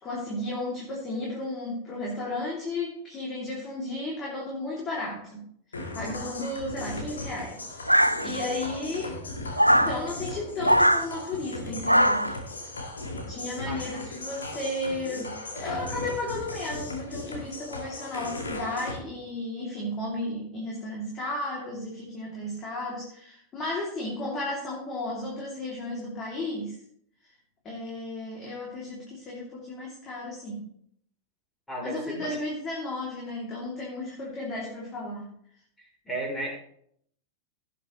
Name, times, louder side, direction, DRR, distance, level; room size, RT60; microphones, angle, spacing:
voice 1, 0.0-5.4 5.9-7.6 7.8-9.2 9.7-12.3 13.3-26.8 27.6-30.7 31.8-35.3, left 2 dB, 30° left, -4 dB, 2.9 m, -34 dB
sound 1, 5.7-19.0, left 2 dB, 75° left, 2.3 m, -37 dB
sound 2, 7.9-8.6 9.6-10.0 10.6-11.1 11.9-12.4, equal, 90° right, 0.4 m, -20 dB
voice 2, 31.7-32.4 35.8-36.6, right 1 dB, 10° left, 0 dB, 3.9 m, -34 dB
17.0 x 7.5 x 3.2 m, 0.69 s
figure-of-eight pair, 90°, 0 cm